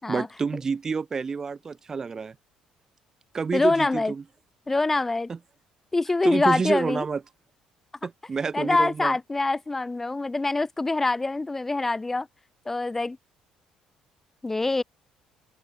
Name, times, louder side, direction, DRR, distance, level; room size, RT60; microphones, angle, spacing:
voice 1, 0.1-2.3 3.3-4.2 5.3-5.4 6.2-7.2 8.0-9.2, right 5 dB, 25° right, 4.6 m, -28 dB
voice 2, 3.5-4.1 4.7-5.3 5.9-7.1 8.5-12.3 12.7-13.2 14.4-14.8, left 2 dB, 10° left, 7.6 m, -25 dB
open air
cardioid pair, 145°, 2 cm